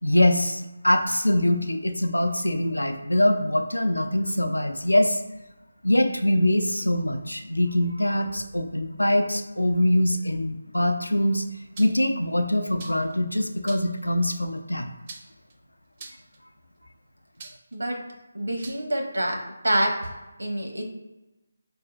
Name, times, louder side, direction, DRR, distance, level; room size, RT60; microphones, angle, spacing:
voice 1, 0.0-5.2 5.8-11.4 11.8-14.9, left 1 dB, 90° left, 6 dB, 0.4 m, -23 dB
sound 1, 11.8-12.1 12.8-13.1 13.7-14.0 15.1-15.5 16.0-16.4 17.4-17.8 18.6-18.8, right 3 dB, 30° right, 0.4 m, -43 dB
voice 2, 18.3-19.4 19.6-20.1 20.4-20.8, right 1 dB, 75° right, 1 dB, 0.9 m, -26 dB
4.9 x 2.7 x 2.4 m, 1.1 s
figure-of-eight pair, 155°, 0 cm